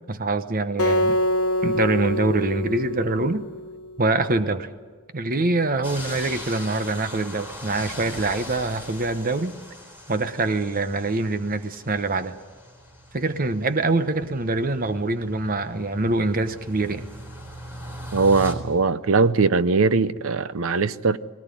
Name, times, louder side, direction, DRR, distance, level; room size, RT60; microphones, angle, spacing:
voice 1, 0.1-1.2 1.6-3.4 4.0-4.7 5.1-9.5 10.1-12.4 13.1-17.1, right 2 dB, 40° right, 1.0 m, -24 dB
Acoustic guitar, 0.8-4.0, left 1 dB, 75° left, 1.1 m, -25 dB
sound 1, 5.8-18.5, left 1 dB, 10° right, 3.7 m, -40 dB
voice 2, 18.1-21.2, right 4 dB, 65° right, 0.7 m, -20 dB
20.5 x 18.0 x 9.9 m
head